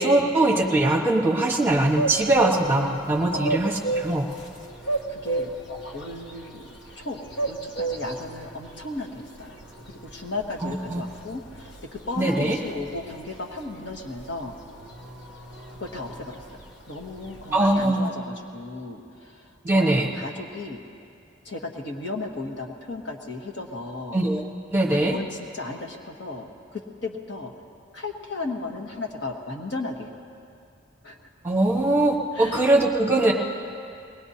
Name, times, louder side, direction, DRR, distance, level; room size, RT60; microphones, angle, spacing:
voice 1, 0.0-4.3 10.6-11.0 12.2-12.6 17.5-18.1 19.6-20.1 24.1-24.4 24.7-25.2 31.4-33.3, right 2 dB, 10° right, -1 dB, 1.2 m, -21 dB
sound 1, 1.7-17.9, right 2 dB, 85° left, 1.3 m, -34 dB
voice 2, 3.3-3.7 5.1-5.5 5.9-7.2 7.5-9.6 9.8-14.6 15.7-16.6 16.9-20.8 21.4-24.2 24.9-27.5 27.9-30.1 31.0-31.3 32.3-32.7, left 2 dB, 70° left, 1 dB, 1.4 m, -35 dB
21.5 x 19.0 x 2.8 m, 2.5 s
head